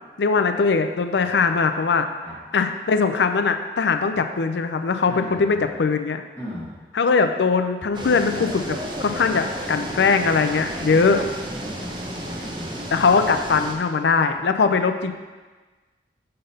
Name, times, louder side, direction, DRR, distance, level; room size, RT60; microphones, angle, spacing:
voice 1, 0.2-2.1 2.5-6.2 6.9-11.3 12.9-15.1, left 4 dB, 80° left, 8 dB, 0.4 m, -21 dB
voice 2, 5.1-5.7 6.4-6.7 10.9-11.2 11.5-12.7, equal, 10° left, -8 dB, 1.2 m, -37 dB
sound 1, 7.9-13.7, right 1 dB, 25° right, 0.7 m, -32 dB
6.6 x 3.9 x 5.4 m, 1.3 s
head